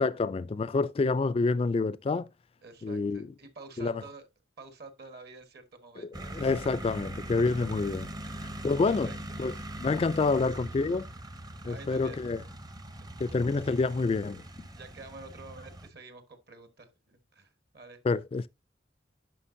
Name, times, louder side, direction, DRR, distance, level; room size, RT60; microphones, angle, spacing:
voice 1, 0.0-2.3 2.8-3.3 3.8-4.0 6.0-8.1 8.6-9.1 9.4-9.5 9.8-11.1 11.6-12.4 13.2-14.4 18.0-18.5, left 3 dB, 30° left, 0.3 m, -28 dB
voice 2, 2.6-4.3 4.6-6.4 8.2-9.4 11.6-12.2 13.2-13.3 14.7-18.0, right 3 dB, 60° right, 1.4 m, -49 dB
sound 1, 6.1-15.9, right 1 dB, 20° right, 0.6 m, -41 dB
9.9 x 5.7 x 2.6 m
head